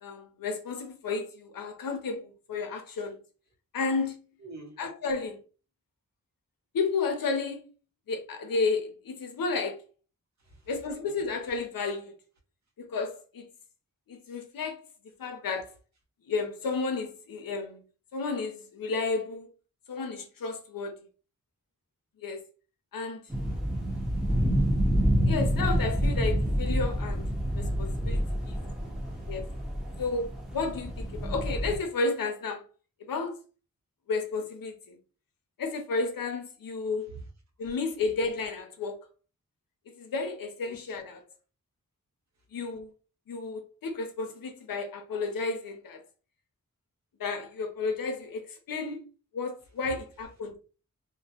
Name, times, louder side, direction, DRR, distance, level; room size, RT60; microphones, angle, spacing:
voice 1, 0.0-3.2 3.7-4.1 4.8-5.4 6.7-7.7 8.1-9.8 10.7-12.1 12.8-13.5 14.1-14.8 15.2-15.7 16.3-17.8 18.1-19.5 19.9-21.0 22.2-22.4 22.9-23.2 25.3-27.2 27.6-28.6 29.3-29.5 30.0-32.6 33.1-33.4 34.1-35.0 35.6-37.1 37.6-39.0 40.0-41.2 42.5-42.9 43.3-46.0 47.2-49.0 49.3-50.6, left 4 dB, 85° left, 0.6 m, -32 dB
voice 2, 4.4-4.8 10.4-10.6 23.9-24.7 29.1-29.3 37.1-37.2 40.6-40.8, right 3 dB, 55° right, 0.8 m, -48 dB
sound 1, 23.3-31.8, equal, ahead, 0.7 m, -28 dB
2.1 x 2.1 x 2.7 m
wide cardioid pair, 80°, 33 cm